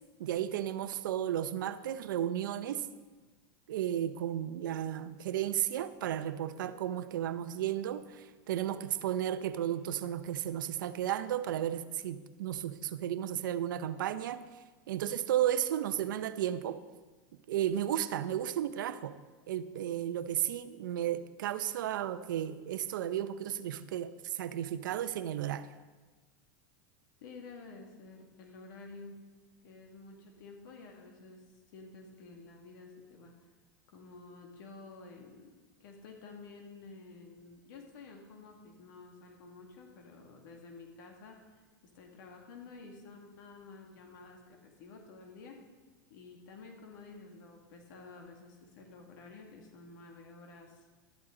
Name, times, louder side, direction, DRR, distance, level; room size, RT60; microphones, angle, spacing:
voice 1, 0.2-2.9 3.7-14.4 14.9-16.8 17.5-19.2 19.5-25.7, right 11 dB, 85° right, 0.7 m, -33 dB
voice 2, 27.2-29.3 29.6-31.4 31.7-33.5 33.9-35.5 35.8-41.6 41.9-45.6 46.1-50.8, left 3 dB, 75° left, 2.1 m, -51 dB
13.0 x 12.0 x 3.9 m
supercardioid pair, 115°, 11 cm